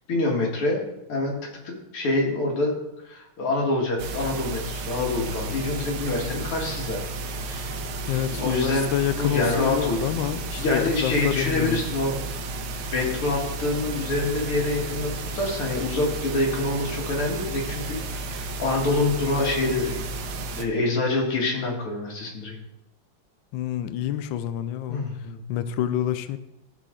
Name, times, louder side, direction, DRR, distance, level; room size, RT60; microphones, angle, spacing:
voice 1, 0.1-0.8 1.1-1.3 1.9-2.7 3.0-7.0 7.4-7.8 8.4-10.0 10.6-12.2 12.9-20.0 20.5-22.6 24.9-25.7, left 2 dB, 90° left, 2.8 m, -26 dB
sound 1, 4.0-20.6, right 2 dB, 85° right, 1.7 m, -33 dB
voice 2, 8.1-11.8 23.5-25.0 25.5-26.4, left 11 dB, 75° left, 1.2 m, -27 dB
15.0 x 5.1 x 3.8 m
omnidirectional pair, 2.3 m